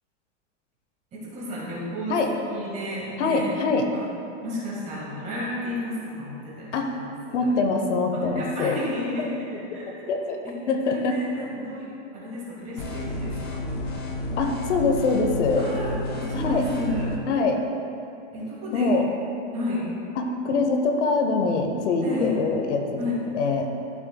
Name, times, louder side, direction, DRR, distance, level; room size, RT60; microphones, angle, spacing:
voice 1, 1.1-3.5 3.9-4.0 4.4-7.0 7.3-7.5 8.1-10.1 10.4-10.5 10.8-13.7 15.6-17.1 18.3-19.0 19.5-19.9 22.0-22.4 23.0-23.2, left 1 dB, 20° right, -6 dB, 1.7 m, -32 dB
voice 2, 3.2-3.9 6.7-7.0 7.3-8.8 9.2-9.3 9.8-10.4 10.7-11.2 14.4-15.6 16.3-16.6 17.3-17.6 18.7-19.1 20.2-23.7, left 3 dB, 75° left, 4 dB, 1.0 m, -24 dB
sound 1, 12.8-17.2, left 1 dB, 25° left, 0.3 m, -31 dB
12.0 x 6.4 x 2.3 m, 2.8 s
supercardioid pair, 170°, 36 cm